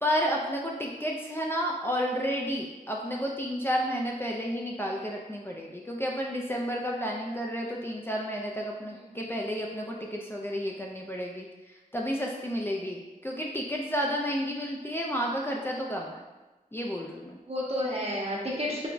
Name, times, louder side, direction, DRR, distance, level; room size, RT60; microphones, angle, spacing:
voice 1, 0.0-16.2 16.7-17.4, equal, 15° left, -2 dB, 0.4 m, -31 dB
voice 2, 8.9-9.5 17.5-18.9, left 1 dB, 45° right, -4 dB, 0.9 m, -32 dB
4.7 x 2.2 x 2.5 m, 1.1 s
wide cardioid pair, 60°, 15 cm